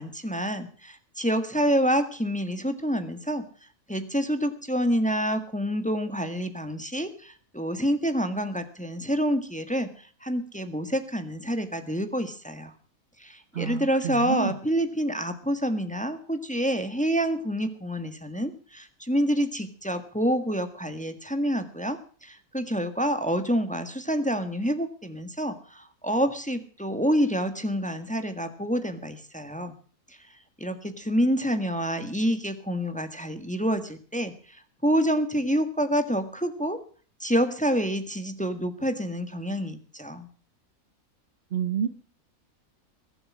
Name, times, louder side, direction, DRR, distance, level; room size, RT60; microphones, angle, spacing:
voice 1, 0.0-3.4 3.9-12.7 13.2-29.7 30.6-36.8 37.2-40.3, equal, 5° left, 8 dB, 1.5 m, -27 dB
voice 2, 41.5-41.9, right 7 dB, 45° right, 9 dB, 1.1 m, -27 dB
21.0 x 8.0 x 6.2 m, 0.43 s
omnidirectional pair, 1.5 m